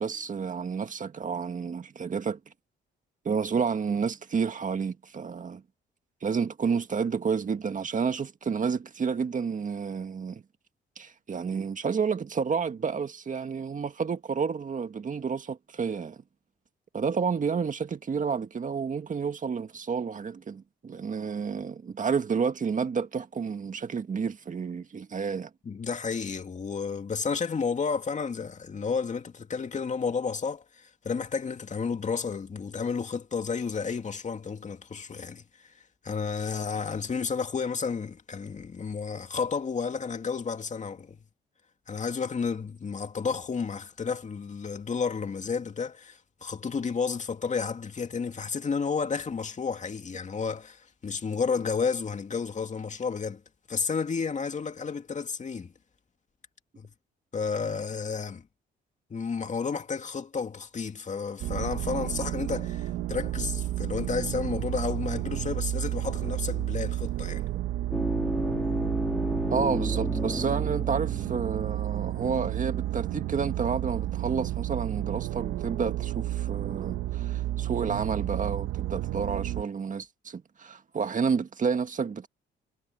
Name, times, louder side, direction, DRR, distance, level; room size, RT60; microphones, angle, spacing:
voice 1, 0.0-2.4 3.3-5.6 6.2-10.4 11.0-16.2 16.9-25.5 69.5-82.3, right 6 dB, 40° right, 1.9 m, -30 dB
voice 2, 25.6-35.7 36.0-41.2 41.9-53.4 53.7-55.7 56.8-56.9 57.3-58.4 59.1-67.4, left 5 dB, 35° left, 2.3 m, -31 dB
sound 1, 61.4-79.6, right 14 dB, 85° right, 1.1 m, -31 dB
sound 2, 67.9-71.8, left 1 dB, 5° left, 2.8 m, -32 dB
cardioid pair, 90°, 20 cm